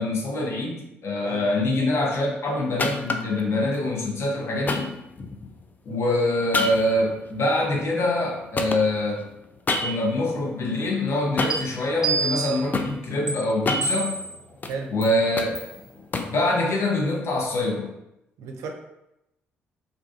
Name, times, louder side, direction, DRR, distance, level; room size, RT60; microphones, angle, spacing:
voice 1, 0.0-4.9 5.9-9.3 9.8-14.1 14.9-15.6 16.3-17.9, left 1 dB, 50° left, -1 dB, 0.7 m, -24 dB
sound 1, 2.8-3.4 4.7-5.6 6.5-8.3 8.6-10.2 11.4-11.8 12.3-12.9 13.5-14.8 15.1-16.4, left 2 dB, 30° left, 0.3 m, -29 dB
sound 2, 11.5-11.6 12.0-12.6 13.3-13.4 13.8-14.3 15.0-15.1 15.6-15.8, right 4 dB, 15° right, 1.1 m, -26 dB
voice 2, 18.4-18.7, right 4 dB, 60° right, 2 dB, 0.4 m, -33 dB
2.5 x 2.3 x 2.3 m, 0.89 s
figure-of-eight pair, 45°, 6 cm